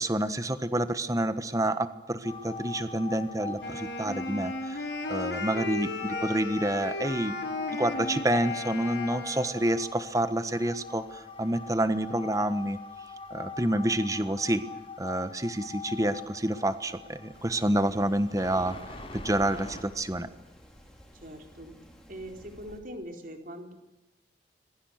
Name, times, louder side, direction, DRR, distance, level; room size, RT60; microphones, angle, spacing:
voice 1, 0.0-4.8 5.1-7.4 7.7-12.8 13.3-14.6 15.0-18.8 19.1-20.3, right 1 dB, 20° right, 11 dB, 1.4 m, -28 dB
sound 1, 2.2-19.8, left 4 dB, 30° left, 6.5 m, -42 dB
Wind instrument woodwind instrument, 3.6-9.8, left 2 dB, 75° left, 4.9 m, -36 dB
Rain, 17.3-22.8, equal, 5° left, 4.9 m, -53 dB
voice 2, 21.2-21.8 22.1-23.7, equal, 50° right, 4 dB, 4.2 m, -42 dB
26.5 x 22.0 x 6.6 m, 0.98 s
head